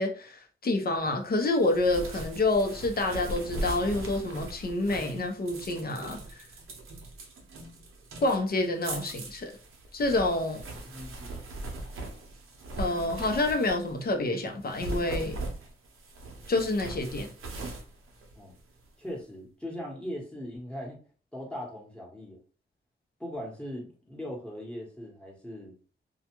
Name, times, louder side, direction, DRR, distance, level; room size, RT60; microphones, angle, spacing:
voice 1, 0.0-6.2 8.2-9.6 9.9-10.6 12.8-15.4 16.5-17.3, left 2 dB, 45° left, 0.7 m, -28 dB
sound 1, 1.4-14.1 14.6-18.9, right 2 dB, 90° right, 0.7 m, -40 dB
voice 2, 10.9-11.4 18.4-18.5 19.0-21.0 21.3-22.4 23.2-25.7, equal, 5° left, 1.1 m, -39 dB
2.4 x 2.2 x 2.9 m
cardioid pair, 65°, 21 cm